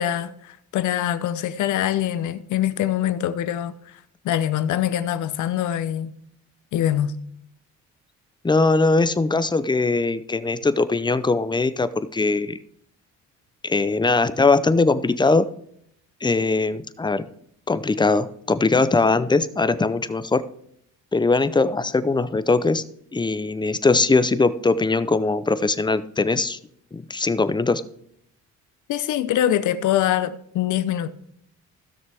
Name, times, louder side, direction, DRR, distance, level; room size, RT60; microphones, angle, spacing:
voice 1, 0.0-4.0 4.2-6.2 6.7-7.1 28.9-31.1, left 11 dB, 80° left, 0.8 m, -24 dB
voice 2, 8.4-12.6 13.6-15.5 16.2-17.2 17.7-20.4 21.1-22.8 23.1-26.6 26.9-27.8, left 3 dB, 15° left, 0.6 m, -21 dB
15.5 x 6.5 x 3.5 m
cardioid pair, 90°, 30 cm